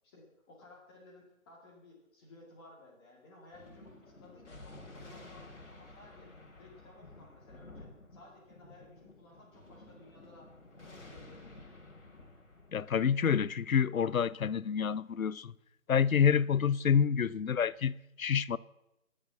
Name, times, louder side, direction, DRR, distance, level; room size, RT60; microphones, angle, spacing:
voice 1, 0.0-6.3 6.6-11.8, left 2 dB, 20° left, 2.2 m, -57 dB
Thunder, 3.5-14.4, left 2 dB, 60° left, 3.1 m, -53 dB
voice 2, 12.7-15.5 15.9-18.6, left 7 dB, 75° left, 0.6 m, -28 dB
19.0 x 6.6 x 7.3 m
figure-of-eight pair, 155°, 42 cm